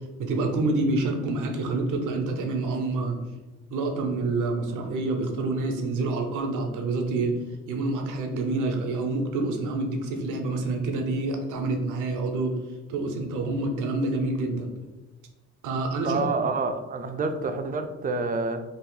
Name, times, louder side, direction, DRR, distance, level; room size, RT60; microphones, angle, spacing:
voice 1, 0.2-3.2 3.7-7.4 7.7-12.6 12.9-14.7 15.6-16.2, right 2 dB, 85° right, 3 dB, 0.7 m, -27 dB
voice 2, 16.0-18.6, right 3 dB, 30° right, 7 dB, 0.4 m, -28 dB
2.8 x 2.5 x 3.7 m, 1.2 s
cardioid pair, 90°, 30 cm